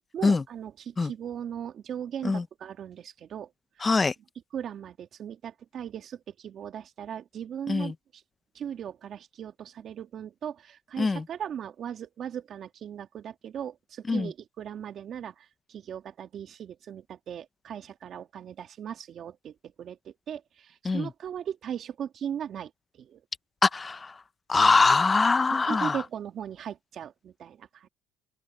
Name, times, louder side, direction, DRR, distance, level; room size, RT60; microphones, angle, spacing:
voice 1, 0.1-3.5 3.8-3.9 4.5-8.2 8.5-23.2 25.5-27.9, right 9 dB, 45° right, 2.8 m, -38 dB
voice 2, 3.8-4.1 7.7-7.9 11.0-11.2 14.1-14.3 20.8-21.1 23.6-24.1 24.5-26.0, left 4 dB, 20° left, 0.7 m, -23 dB
open air
cardioid pair, 120°, 0 cm